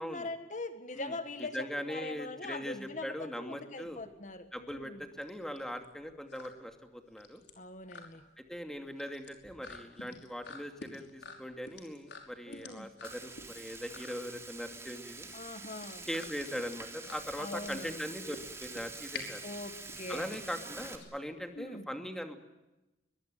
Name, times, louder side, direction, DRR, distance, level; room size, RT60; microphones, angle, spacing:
voice 1, 0.0-5.0 7.6-8.2 12.5-12.9 15.3-16.0 17.4-17.9 19.4-20.3 21.5-21.9, left 2 dB, 45° left, 9 dB, 1.6 m, -42 dB
voice 2, 0.9-4.0 4.5-7.4 8.4-15.3 16.1-19.4 20.1-22.4, equal, 5° left, 6 dB, 2.5 m, -40 dB
sound 1, 3.8-21.6, left 4 dB, 85° left, 5.3 m, -50 dB
Frying (food), 13.0-21.0, right 3 dB, 15° right, 3.4 m, -46 dB
23.5 x 22.5 x 9.3 m, 1.0 s
head